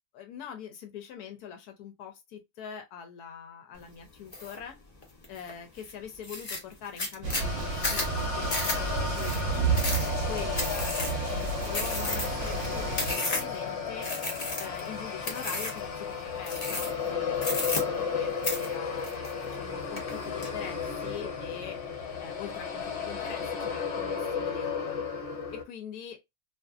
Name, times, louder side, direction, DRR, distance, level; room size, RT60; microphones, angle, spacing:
voice 1, 0.1-4.8 5.3-9.8 10.3-14.1 14.6-19.1 19.5-21.8 22.2-25.1 25.5-26.2, left 8 dB, 80° left, 1.1 m, -43 dB
sound 1, 4.3-4.6 5.0-5.5 5.9-6.0 6.2-13.6 14.0-14.9 15.2-15.9 16.4-17.1 17.4-18.2 18.4-19.6 20.0-20.5, left 2 dB, 35° left, 0.6 m, -33 dB
sound 2, 7.2-13.1, right 5 dB, 65° right, 0.8 m, -31 dB
sound 3, 7.4-25.6, left 6 dB, 55° left, 1.0 m, -34 dB
2.5 x 2.5 x 2.3 m
omnidirectional pair, 1.6 m